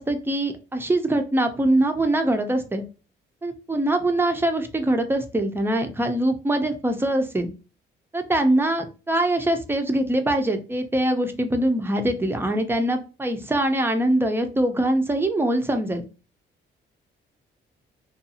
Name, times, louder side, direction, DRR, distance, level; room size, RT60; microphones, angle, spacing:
voice 1, 0.0-2.8 3.4-7.5 8.1-16.0, right 1 dB, 10° right, 6 dB, 0.5 m, -23 dB
2.6 x 2.3 x 2.7 m, 0.32 s
cardioid pair, 90°, 20 cm